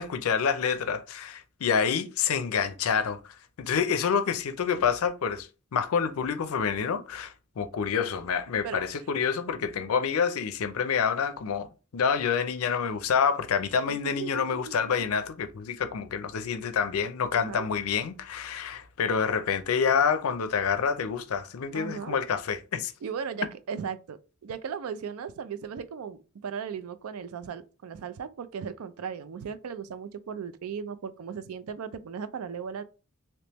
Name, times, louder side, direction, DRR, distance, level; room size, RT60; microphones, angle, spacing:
voice 1, 0.0-22.9, left 6 dB, 80° left, 0.4 m, -28 dB
voice 2, 13.9-15.1 17.3-17.7 21.7-22.2 23.0-32.8, right 6 dB, 80° right, 0.4 m, -37 dB
3.3 x 3.0 x 3.0 m
head